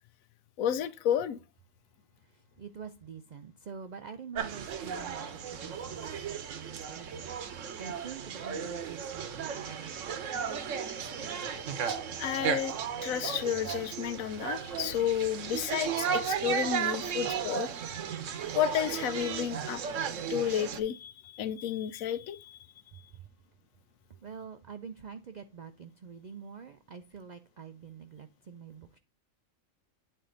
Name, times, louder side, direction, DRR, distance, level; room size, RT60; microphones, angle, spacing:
voice 1, 0.6-1.4 12.2-12.7 13.0-17.7 18.5-19.8 20.3-22.6, left 10 dB, 85° left, 1.0 m, -31 dB
voice 2, 2.2-10.1 22.9-23.3 24.2-29.0, right 6 dB, 85° right, 0.3 m, -46 dB
sound 1, 4.3-20.8, right 7 dB, 70° right, 1.1 m, -35 dB
8.8 x 4.5 x 3.8 m
omnidirectional pair, 1.4 m